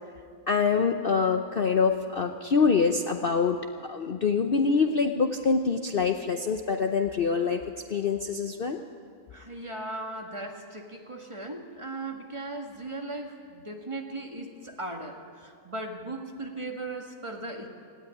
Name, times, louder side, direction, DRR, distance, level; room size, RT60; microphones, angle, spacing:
voice 1, 0.5-7.6 7.9-8.8, left 5 dB, 50° left, 6 dB, 0.8 m, -25 dB
voice 2, 9.3-17.7, right 2 dB, 20° right, 2 dB, 1.7 m, -38 dB
18.5 x 16.0 x 9.8 m, 2.2 s
omnidirectional pair, 1.5 m